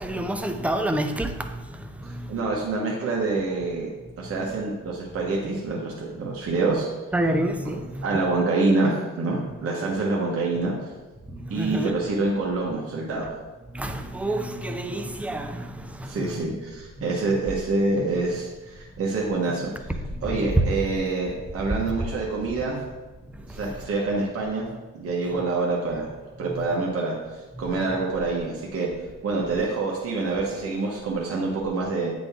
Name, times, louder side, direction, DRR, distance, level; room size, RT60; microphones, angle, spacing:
voice 1, 0.0-2.3 4.2-4.6 7.1-8.1 11.3-11.9 13.7-16.4 20.1-20.6 23.3-23.7, right 1 dB, 5° right, 6 dB, 0.5 m, -28 dB
voice 2, 2.3-6.9 7.6-7.7 8.0-10.7 11.5-13.3 16.0-19.9 20.2-22.8 23.5-24.7 24.9-26.1 26.4-27.1 27.6-28.9 29.2-32.1, right 3 dB, 50° right, -3 dB, 1.2 m, -26 dB
8.1 x 3.9 x 3.6 m, 1.2 s
cardioid pair, 90°, 30 cm